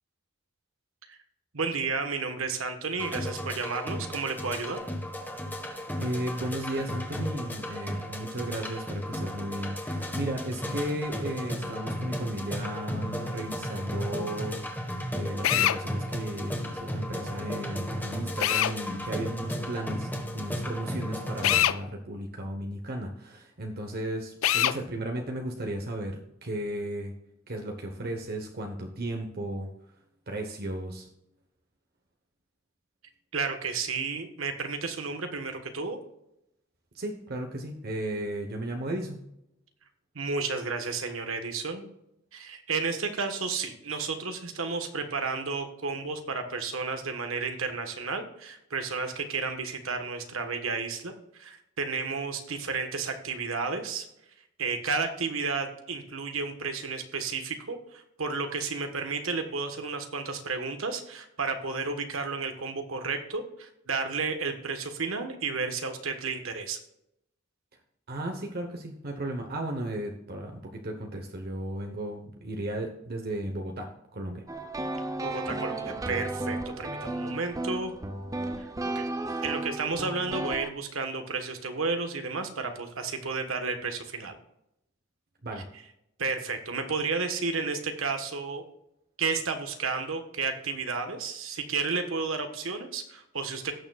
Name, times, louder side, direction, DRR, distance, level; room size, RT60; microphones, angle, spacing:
voice 1, 1.5-4.8 33.3-36.0 40.1-41.9 42.3-54.1 54.6-66.8 75.2-77.9 78.6-78.7 78.9-79.0 79.4-84.4 86.2-88.6 89.2-93.7, right 4 dB, 85° right, 6 dB, 1.3 m, -32 dB
sound 1, 3.0-21.6, equal, 10° left, 1.3 m, -35 dB
voice 2, 6.0-27.1 27.5-29.7 30.3-31.1 36.9-39.2 68.1-74.4 85.4-85.7, right 1 dB, 50° right, 3 dB, 1.0 m, -35 dB
Drill, 15.4-15.8 18.4-18.8 21.4-21.8 24.4-24.8, left 12 dB, 75° left, 0.4 m, -23 dB
sound 2, 74.5-80.7, right 2 dB, 15° right, 0.7 m, -34 dB
17.0 x 6.8 x 2.4 m, 0.82 s
head